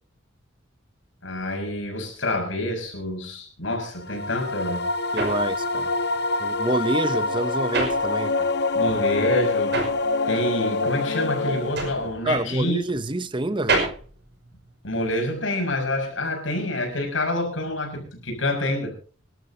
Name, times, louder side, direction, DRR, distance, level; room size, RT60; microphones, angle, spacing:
voice 1, 1.2-4.8 8.7-9.8 10.3-12.8 14.8-18.9, left 1 dB, 70° left, 3 dB, 6.2 m, -27 dB
sound 1, 4.0-12.2, left 3 dB, 55° left, 1.1 m, -25 dB
sound 2, 4.4-8.7 9.0-15.2, right 3 dB, 55° right, 5.6 m, -30 dB
voice 2, 5.1-5.9 6.4-8.5 12.2-13.9, right 2 dB, 25° right, 14 dB, 0.8 m, -27 dB
26.5 x 12.5 x 2.9 m, 0.37 s
head